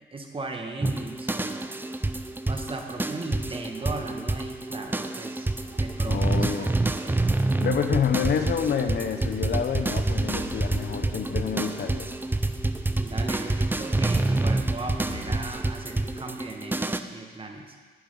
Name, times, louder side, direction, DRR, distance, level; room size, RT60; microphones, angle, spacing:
voice 1, 0.0-1.7 2.5-5.5 5.8-7.3 13.0-17.8, right 3 dB, 25° right, 3 dB, 1.6 m, -37 dB
sound 1, 0.8-17.0, right 2 dB, 10° right, 0.5 m, -27 dB
sound 2, 3.7-4.0 4.7-4.9 5.6-5.9 6.4-6.9 7.4-7.7 9.7-9.8 10.7-11.0 12.2-12.4 13.2-13.3, right 7 dB, 75° right, 2.3 m, -49 dB
voice 2, 6.0-6.7 7.6-12.1, left 7 dB, 55° left, 7 dB, 1.0 m, -28 dB
sound 3, 8.8-15.5, left 2 dB, 20° left, 4.1 m, -44 dB
11.5 x 6.1 x 8.6 m, 1.5 s
cardioid pair, 90°, 20 cm